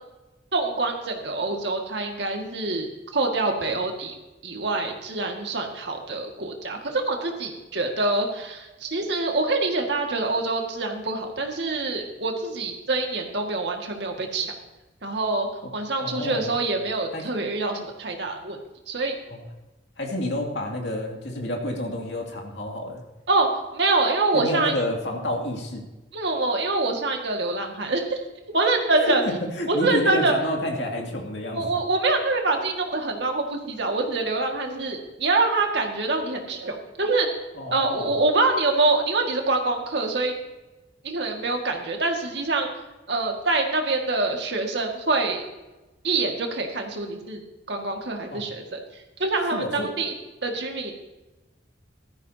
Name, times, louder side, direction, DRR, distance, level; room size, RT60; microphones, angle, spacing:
voice 1, 0.5-2.9 3.1-4.2 4.4-14.5 15.0-15.5 15.7-18.6 18.9-19.2 23.3-24.8 26.1-28.2 28.5-29.2 29.7-30.3 31.5-37.3 37.7-40.3 41.0-42.7 43.1-45.4 46.0-47.4 47.7-48.8 49.2-50.1 50.4-50.9, right 3 dB, 65° right, 2 dB, 2.0 m, -25 dB
voice 2, 16.0-16.5 17.1-17.3 19.3-19.4 20.0-23.0 24.3-25.8 29.0-31.7 37.5-38.1 48.3-48.4 49.5-49.9, left 1 dB, 65° left, 1 dB, 2.4 m, -29 dB
15.5 x 13.5 x 2.8 m, 1.1 s
head